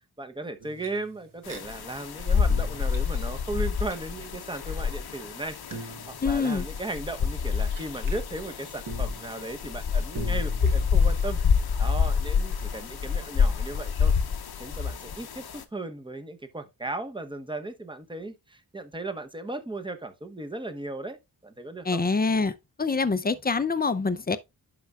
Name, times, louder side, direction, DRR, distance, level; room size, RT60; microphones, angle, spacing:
voice 1, 0.2-11.4 11.8-14.1 14.6-22.0, right 2 dB, 10° right, 1.0 m, -36 dB
sound 1, 0.6-1.6 1.9-2.1 2.4-3.9 4.2-8.2 8.9-11.3, right 3 dB, 50° right, 1.5 m, -44 dB
sound 2, 1.5-15.6, left 6 dB, 60° left, 0.9 m, -27 dB
voice 2, 6.2-6.7 21.9-22.5 22.8-24.4, left 4 dB, 20° left, 0.7 m, -25 dB
11.0 x 4.7 x 2.4 m
wide cardioid pair, 80°, 42 cm